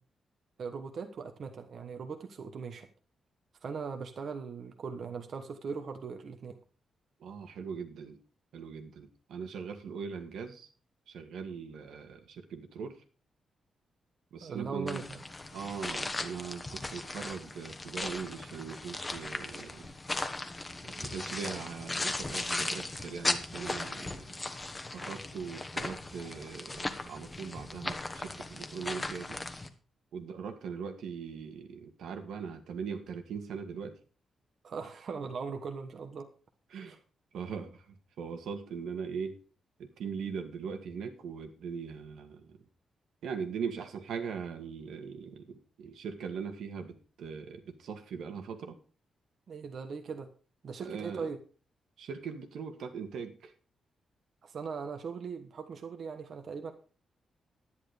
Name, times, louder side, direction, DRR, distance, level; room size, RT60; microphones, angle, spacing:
voice 1, 0.6-2.9 3.6-6.6 14.4-15.2 34.6-36.3 36.8-37.0 49.5-50.3 50.6-51.4 54.4-56.7, right 5 dB, 50° right, 6 dB, 1.3 m, -39 dB
voice 2, 7.2-8.2 8.5-10.7 11.1-13.0 14.3-15.0 15.5-19.9 20.8-24.4 24.9-29.4 30.1-34.0 36.7-37.0 37.3-39.4 39.8-42.6 43.2-48.8 50.8-51.3 52.0-53.5, right 6 dB, 85° right, 6 dB, 2.0 m, -40 dB
sound 1, 14.9-29.7, left 2 dB, 15° left, 1.2 m, -37 dB
11.0 x 10.5 x 5.1 m, 0.37 s
wide cardioid pair, 165°, 0 cm